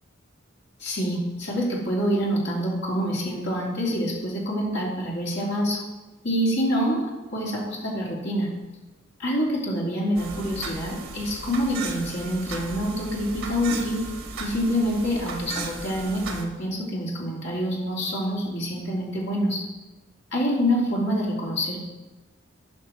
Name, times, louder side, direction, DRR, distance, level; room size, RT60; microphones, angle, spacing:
voice 1, 0.8-5.8 6.2-8.5 9.2-14.0 14.4-19.6 20.3-21.8, equal, 55° left, -4 dB, 2.8 m, -26 dB
sound 1, 10.2-16.4, right 4 dB, 85° right, 1.3 m, -36 dB
11.5 x 5.6 x 4.4 m, 1.1 s
head